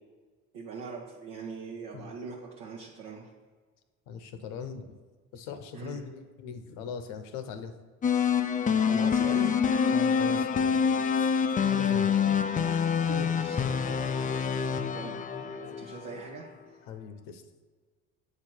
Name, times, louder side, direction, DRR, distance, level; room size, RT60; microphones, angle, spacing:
voice 1, 0.5-3.3 5.7-6.0 8.9-9.6 12.2-12.4 13.1-13.6 14.9-16.6, right 4 dB, 70° right, -2 dB, 1.0 m, -41 dB
voice 2, 4.1-4.8 5.3-7.7 9.9-11.3 11.6-12.1 16.9-17.4, left 6 dB, 70° left, 8 dB, 0.7 m, -40 dB
sound 1, 8.0-16.2, left 7 dB, 20° left, 0.4 m, -26 dB
7.8 x 2.9 x 6.1 m, 1.4 s
hypercardioid pair, 55°, 42 cm